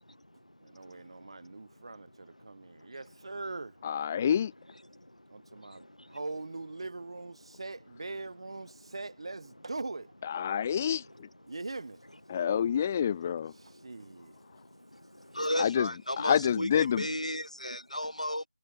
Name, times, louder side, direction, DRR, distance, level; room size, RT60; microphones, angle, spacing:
voice 1, 0.6-3.8 5.3-10.2 11.5-12.0 13.5-14.4, right 3 dB, 50° right, 3.4 m, -41 dB
voice 2, 3.8-4.5 10.2-11.3 12.3-13.5 15.6-15.9 16.2-17.0, left 8 dB, 20° left, 0.9 m, -28 dB
voice 3, 15.3-18.5, left 1 dB, 85° left, 3.0 m, -33 dB
figure-of-eight pair, 165°, 4 cm